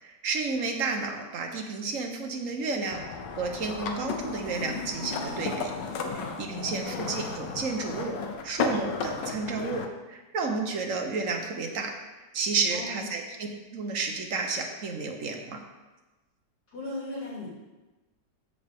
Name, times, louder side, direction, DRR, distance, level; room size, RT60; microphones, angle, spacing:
voice 1, 0.0-5.7 6.1-8.2 8.4-11.9 12.3-15.6, right 4 dB, 55° right, 3 dB, 1.3 m, -31 dB
sound 1, 2.9-9.9, left 4 dB, 85° left, 1.5 m, -34 dB
voice 2, 6.5-7.0 12.7-13.2 16.7-17.5, left 2 dB, 65° left, -6 dB, 3.2 m, -38 dB
13.5 x 5.4 x 3.6 m, 1.1 s
omnidirectional pair, 1.9 m